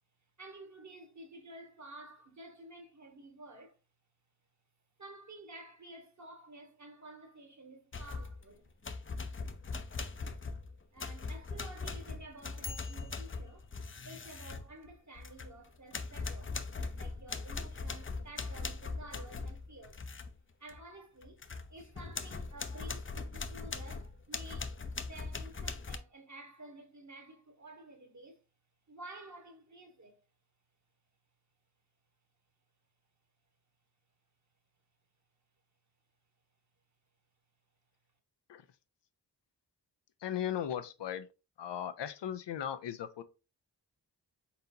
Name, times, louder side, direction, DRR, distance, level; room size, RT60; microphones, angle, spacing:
voice 1, 0.4-3.8 5.0-8.7 10.9-13.7 14.0-16.6 17.0-20.0 20.6-21.4 21.7-24.7 25.0-28.4 28.9-30.2, right 2 dB, 40° right, 1.5 m, -52 dB
sound 1, 7.9-8.4 8.8-15.6 15.9-20.3 20.7-20.8 21.2-26.0, left 4 dB, 30° left, 0.5 m, -40 dB
voice 2, 40.2-41.3 41.6-43.2, left 10 dB, 80° left, 0.6 m, -37 dB
4.2 x 3.8 x 2.7 m
cardioid pair, 45°, 42 cm